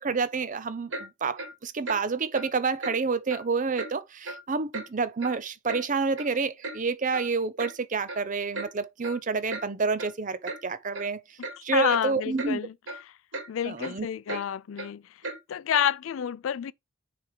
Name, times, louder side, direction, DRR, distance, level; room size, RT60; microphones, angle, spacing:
voice 1, 0.0-11.2 11.6-12.6 13.6-14.4, right 4 dB, 40° right, 0.6 m, -29 dB
Clock, 0.9-1.1 1.4-1.5 1.8-2.0 2.3-2.5 2.8-3.0 3.3-3.4 3.8-3.9 4.2-4.4 4.7-4.9 5.2-5.8 6.2-6.3 6.6-6.8 7.1-7.3 7.6-7.7 8.1-8.2 8.5-8.7 9.0-9.2 9.5-9.7 10.0-10.1 10.4-10.6 10.9-11.0 11.4-11.6 11.9-12.1 12.4-12.5 12.9-13.0 13.3-13.5 13.8-13.9 14.3-14.4 14.8-14.9 15.2-15.4 15.7-15.9, right 2 dB, 65° right, 1.9 m, -36 dB
voice 2, 11.6-12.7 13.5-15.0 15.5-16.7, left 9 dB, 75° left, 0.4 m, -29 dB
6.7 x 3.4 x 4.7 m
head